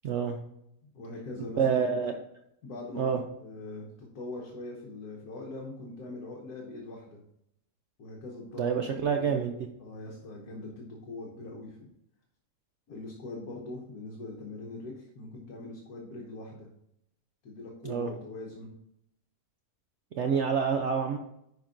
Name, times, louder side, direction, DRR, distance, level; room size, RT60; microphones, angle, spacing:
voice 1, 0.0-0.4 1.4-2.1 3.0-3.2 8.6-9.6 17.8-18.1 20.1-21.2, right 6 dB, 65° right, 4 dB, 0.7 m, -27 dB
voice 2, 0.8-2.1 2.6-3.9 4.1-7.2 8.0-9.4 9.8-11.9 12.9-16.7 17.4-18.7, left 2 dB, 75° left, -1 dB, 1.5 m, -42 dB
10.5 x 5.1 x 2.6 m, 0.78 s
omnidirectional pair, 1.7 m